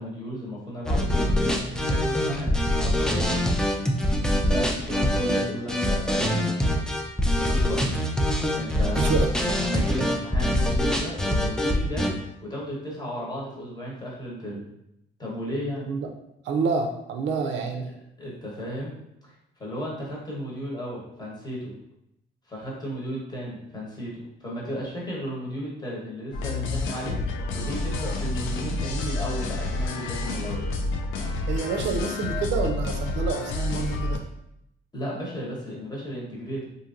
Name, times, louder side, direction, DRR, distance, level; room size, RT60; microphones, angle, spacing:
voice 1, 0.0-2.5 2.8-3.3 4.5-6.8 7.3-7.8 8.5-9.1 9.6-12.1 12.4-14.6 15.2-15.9 18.2-19.3 19.6-21.7 22.5-30.7 34.9-36.7, equal, 20° left, -5 dB, 1.1 m, -34 dB
sound 1, 0.9-12.1, left 1 dB, 5° left, 0.4 m, -24 dB
voice 2, 9.0-9.3 15.9-16.1 16.4-17.9 31.5-34.2, right 5 dB, 65° right, 4 dB, 0.4 m, -27 dB
sound 2, 26.3-34.2, left 2 dB, 80° left, 0.4 m, -29 dB
2.9 x 2.6 x 2.5 m, 0.81 s
cardioid pair, 90°, 20 cm